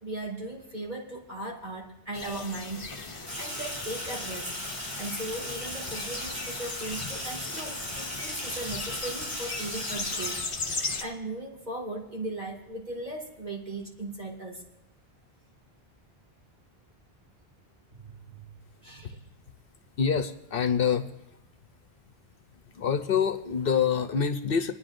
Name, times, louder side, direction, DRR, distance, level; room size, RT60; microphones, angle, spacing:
voice 1, 0.0-4.5 5.0-10.4 10.7-14.6 18.0-18.5 18.8-19.3, right 2 dB, 45° right, -2 dB, 2.4 m, -38 dB
sound 1, 2.1-11.0, left 3 dB, 35° left, 0.7 m, -37 dB
Sink (filling or washing), 3.3-10.4, equal, 25° right, 6.6 m, -37 dB
voice 2, 20.0-21.1 22.7-24.7, left 7 dB, 65° left, 8 dB, 0.8 m, -26 dB
28.0 x 9.9 x 2.6 m, 0.87 s
omnidirectional pair, 1.1 m